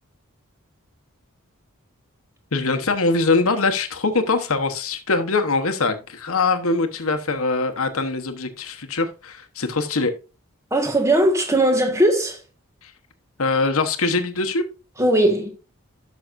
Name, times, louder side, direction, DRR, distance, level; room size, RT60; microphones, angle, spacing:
voice 1, 2.5-10.1 12.8-12.9 13.4-14.6, left 3 dB, 75° left, 1.1 m, -22 dB
voice 2, 10.7-12.4 15.0-15.5, right 1 dB, 15° right, 1.5 m, -18 dB
12.0 x 6.3 x 2.6 m
head